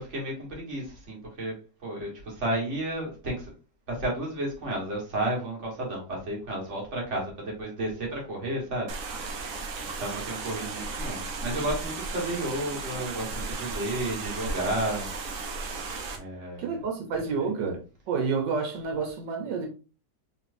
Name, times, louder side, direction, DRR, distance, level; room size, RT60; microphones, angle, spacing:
voice 1, 0.0-1.5 1.8-3.5 3.9-8.9 10.0-15.1 16.2-16.7 17.4-17.5, right 1 dB, 45° right, 1.7 m, -32 dB
sound 1, 8.9-16.2, right 3 dB, 60° right, 1.1 m, -35 dB
voice 2, 16.6-19.7, right 5 dB, 85° right, 1.5 m, -29 dB
4.3 x 3.3 x 2.6 m
omnidirectional pair, 1.9 m